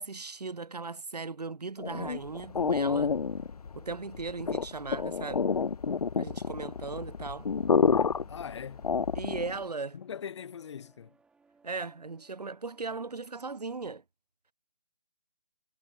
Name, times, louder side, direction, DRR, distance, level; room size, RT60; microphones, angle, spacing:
voice 1, 0.0-3.1 3.7-5.4 6.2-7.5 9.2-10.0 11.6-14.0, right 4 dB, 70° right, 2.2 m, -38 dB
sound 1, 1.8-9.6, left 5 dB, 60° left, 0.8 m, -29 dB
sound 2, 6.8-13.8, right 4 dB, 5° right, 6.6 m, -66 dB
voice 2, 8.3-8.9 9.9-11.2, left 7 dB, 40° left, 4.0 m, -41 dB
figure-of-eight pair, 150°, 21 cm